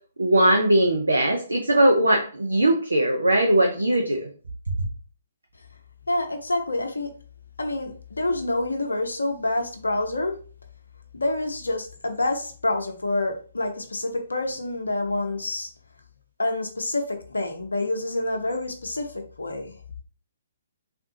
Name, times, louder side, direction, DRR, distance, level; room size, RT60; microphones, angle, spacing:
voice 1, 0.2-4.3, right 1 dB, 75° right, 0.5 m, -20 dB
voice 2, 6.1-7.1 7.6-10.3 11.1-15.7 16.4-19.8, left 2 dB, 70° left, 0.7 m, -27 dB
3.5 x 2.5 x 2.7 m
figure-of-eight pair, 125°, 0 cm